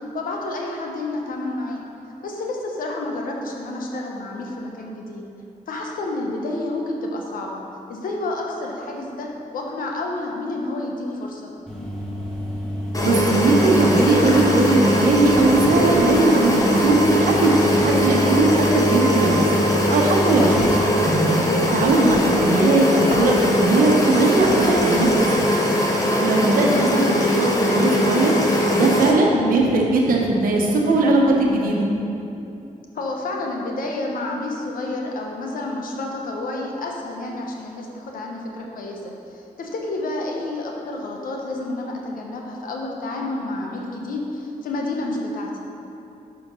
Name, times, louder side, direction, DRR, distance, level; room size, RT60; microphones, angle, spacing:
voice 1, 0.1-1.8 2.2-5.2 5.7-7.6 7.9-11.5 20.4-20.8 24.9-25.1 29.3-29.6 32.9-45.5, left 2 dB, 80° left, 0 dB, 1.0 m, -29 dB
sound 1, 11.7-20.7, equal, 5° left, 1.6 m, -29 dB
sound 2, 12.9-29.1, equal, 25° left, 1.1 m, -21 dB
voice 2, 13.0-19.5 19.9-20.5 21.7-25.1 25.4-25.5 26.2-28.3 28.7-31.9, right 2 dB, 90° right, 0 dB, 1.0 m, -19 dB
sound 3, 20.5-20.8 21.3-22.5 23.1-23.4 23.8-25.2, right 1 dB, 60° right, 1.2 m, -36 dB
6.1 x 5.0 x 5.4 m, 2.8 s
cardioid pair, 75°, 14 cm